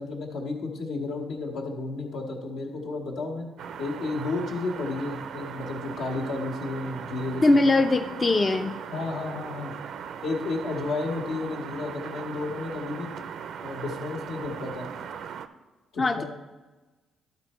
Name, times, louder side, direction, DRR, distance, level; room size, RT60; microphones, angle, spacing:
voice 1, 0.0-3.5 3.8-7.7 8.9-9.7 10.2-13.1 13.6-14.9 15.9-16.2, left 3 dB, 80° left, 1 dB, 1.6 m, -32 dB
sound 1, 3.6-15.5, right 7 dB, 70° right, 0.4 m, -38 dB
voice 2, 7.4-8.8 16.0-16.2, left 2 dB, 30° left, 7 dB, 0.4 m, -21 dB
12.0 x 4.2 x 4.3 m, 1.2 s
cardioid pair, 90°, 0 cm